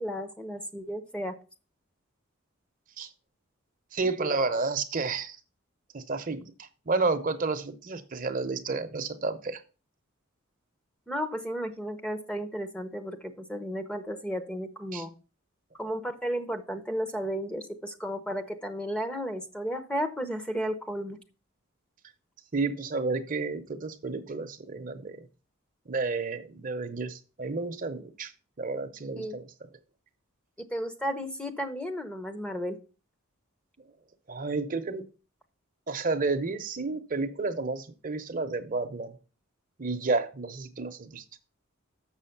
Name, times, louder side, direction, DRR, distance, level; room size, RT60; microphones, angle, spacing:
voice 1, 0.0-1.4 4.2-4.4 11.1-15.1 15.8-21.2 29.2-29.4 30.6-32.8, equal, 5° left, 8 dB, 0.7 m, -33 dB
voice 2, 3.9-5.4 5.9-9.6 14.9-15.0 22.5-25.3 25.9-28.3 28.6-29.5 34.3-35.0 35.9-39.2 39.8-41.2, right 3 dB, 40° right, 9 dB, 0.8 m, -31 dB
7.3 x 6.3 x 5.8 m, 0.34 s
head